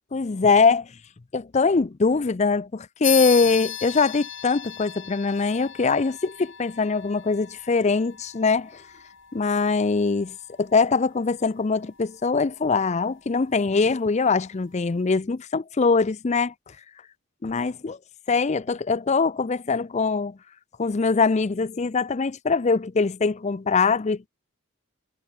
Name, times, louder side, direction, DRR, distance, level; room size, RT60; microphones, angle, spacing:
voice 1, 0.1-0.9 1.3-8.8 9.3-16.5 17.4-18.0 18.3-20.4 20.8-24.3, left 4 dB, 30° left, 0.4 m, -22 dB
sound 1, 3.0-13.0, left 12 dB, 60° left, 5.4 m, -36 dB
head